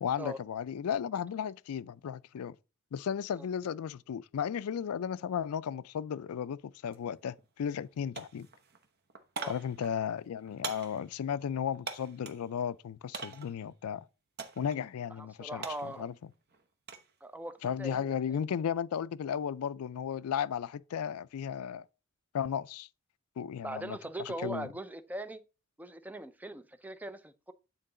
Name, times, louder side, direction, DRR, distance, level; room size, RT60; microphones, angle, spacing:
voice 1, 0.0-2.6 2.9-8.5 9.5-14.1 14.6-16.1 17.6-21.9 22.3-22.9 23.4-24.7, left 8 dB, 80° left, 0.3 m, -35 dB
sound 1, 6.9-7.0 7.4-7.9 8.1-12.5 13.1-13.6 14.4-14.8 15.1-17.1 17.5-17.9, right 4 dB, 45° right, 0.8 m, -44 dB
voice 2, 15.2-16.1 17.2-18.4 23.6-25.4 25.8-27.5, right 1 dB, 5° right, 0.4 m, -41 dB
9.0 x 3.8 x 3.8 m
head